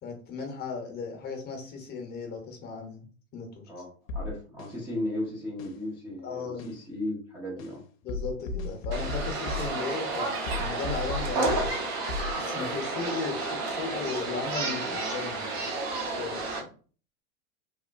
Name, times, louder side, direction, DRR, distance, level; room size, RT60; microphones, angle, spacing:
voice 1, 0.0-3.0 3.3-3.7 6.2-6.7 8.0-10.3 10.6-11.8 12.4-15.5 16.0-16.6, left 4 dB, 25° left, 3 dB, 0.7 m, -36 dB
sound 1, 4.1-4.7 5.6-5.7 6.6-6.7 7.6-7.7 8.1-9.8 10.5-11.8 12.1-12.4, left 3 dB, 75° left, 0.5 m, -34 dB
voice 2, 4.1-7.8, left 1 dB, 5° right, -5 dB, 0.3 m, -35 dB
sound 2, 8.9-16.6, right 3 dB, 50° right, 1.0 m, -31 dB
3.0 x 2.0 x 2.5 m, 0.40 s
hypercardioid pair, 115°, 41 cm